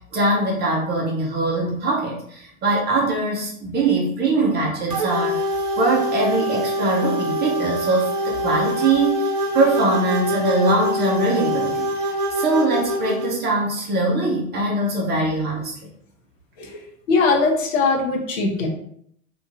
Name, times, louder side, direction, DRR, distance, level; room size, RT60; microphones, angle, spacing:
voice 1, 0.1-5.4 5.8-15.7, right 2 dB, 20° right, -2 dB, 0.7 m, -22 dB
sound 1, 4.9-13.3, equal, 80° right, 0.9 m, -24 dB
voice 2, 17.1-18.7, left 4 dB, 60° left, 1 dB, 0.9 m, -20 dB
2.9 x 2.5 x 2.5 m, 0.68 s
figure-of-eight pair, 85°, 44 cm